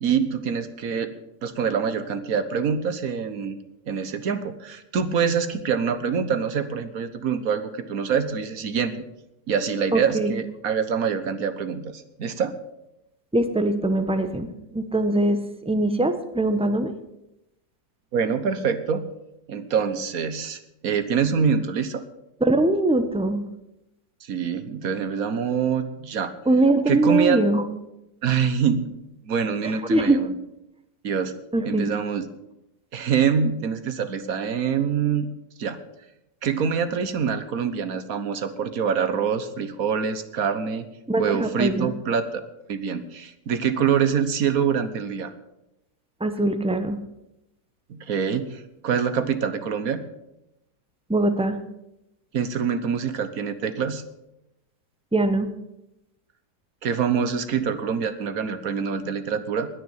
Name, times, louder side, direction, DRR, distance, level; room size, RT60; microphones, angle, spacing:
voice 1, 0.0-1.1 1.4-3.6 3.9-8.9 9.5-12.6 18.1-19.1 19.5-22.0 24.2-26.3 26.9-27.4 28.2-28.9 29.2-30.3 31.0-31.3 31.6-32.2 32.9-35.3 35.6-35.8 36.4-40.9 41.2-42.4 42.7-45.3 47.9-50.0 52.3-54.0 56.8-59.7, right 6 dB, 60° right, 11 dB, 1.5 m, -25 dB
voice 2, 9.9-10.4 13.3-15.4 15.7-16.9 22.4-23.4 26.5-27.6 29.9-30.2 31.5-31.9 41.1-41.9 46.2-47.0 51.1-51.6 55.1-55.5, right 2 dB, 5° right, 8 dB, 0.7 m, -22 dB
20.0 x 6.8 x 7.4 m, 0.90 s
omnidirectional pair, 1.8 m